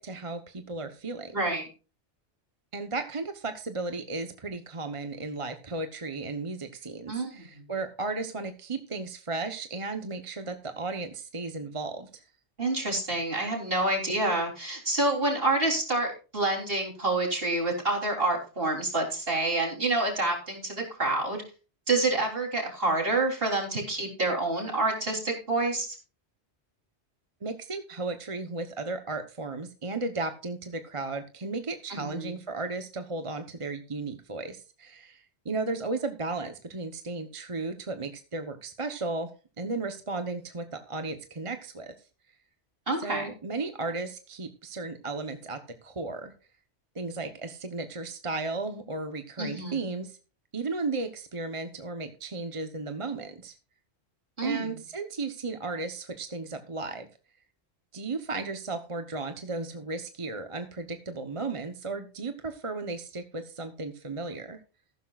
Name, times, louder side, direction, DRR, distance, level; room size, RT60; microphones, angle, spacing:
voice 1, 0.0-1.3 2.7-12.2 27.4-39.3 39.6-41.9 43.0-46.3 46.9-50.2 50.5-53.5 54.4-57.1 57.9-64.6, right 3 dB, 30° right, 7 dB, 1.0 m, -35 dB
voice 2, 1.3-1.7 7.1-7.6 12.6-21.4 21.9-26.0 31.9-32.3 42.9-43.3 49.4-49.8 54.4-54.8, right 2 dB, 55° right, 1 dB, 3.8 m, -28 dB
14.5 x 12.5 x 2.4 m, 0.33 s
omnidirectional pair, 1.1 m